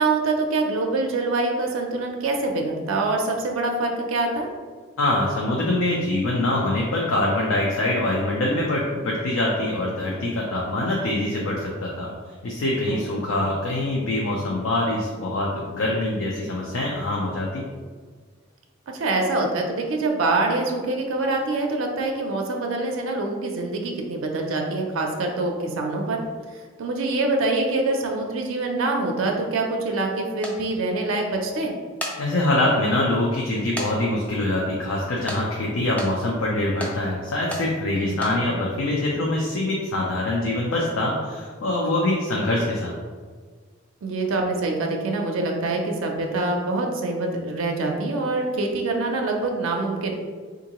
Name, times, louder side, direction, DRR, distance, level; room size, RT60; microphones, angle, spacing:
voice 1, 0.0-4.5 12.9-13.4 18.9-26.2 26.8-31.7 37.9-38.4 44.0-50.1, right 2 dB, 90° right, 1 dB, 0.4 m, -25 dB
voice 2, 5.0-12.1 12.4-17.6 32.2-42.9, left 1 dB, 90° left, -3 dB, 0.5 m, -24 dB
sound 1, 30.4-30.6 31.8-32.2 32.7-32.8 33.8-33.9 34.2-34.3 35.3-35.4 36.0-36.1 36.8-36.9 37.5-37.6 38.1-38.3, left 1 dB, 5° left, 0.3 m, -31 dB
3.6 x 2.5 x 2.9 m, 1.5 s
head